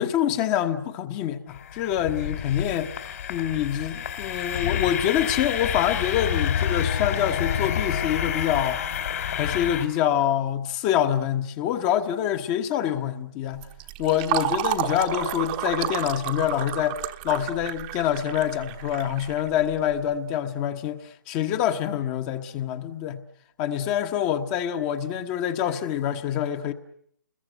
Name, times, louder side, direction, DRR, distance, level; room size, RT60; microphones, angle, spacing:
voice 1, 0.0-8.8 9.4-13.7 14.0-23.2 23.6-26.7, left 10 dB, 25° left, 1.2 m, -26 dB
sound 1, 1.5-9.9, left 9 dB, 50° left, 2.8 m, -28 dB
Fill (with liquid), 13.6-20.0, right 15 dB, 25° right, 1.1 m, -31 dB
29.5 x 21.5 x 8.0 m
figure-of-eight pair, 140°, 11 cm